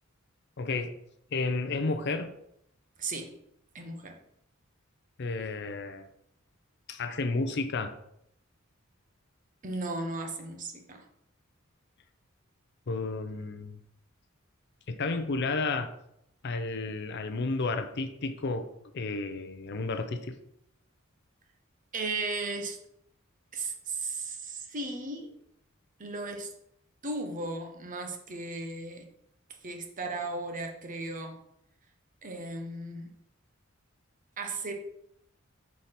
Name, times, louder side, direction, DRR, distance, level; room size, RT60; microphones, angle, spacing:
voice 1, 0.6-0.9 1.3-2.3 5.2-6.1 6.9-7.9 12.9-13.8 14.9-15.9 16.4-20.4, left 3 dB, 55° left, 0.6 m, -32 dB
voice 2, 3.0-3.3 3.7-4.2 9.6-11.0 21.9-22.8 23.5-25.3 26.0-26.5 27.0-29.1 29.6-31.4 32.2-33.1 34.4-34.7, right 3 dB, 40° right, 0.9 m, -36 dB
4.8 x 4.1 x 5.8 m
head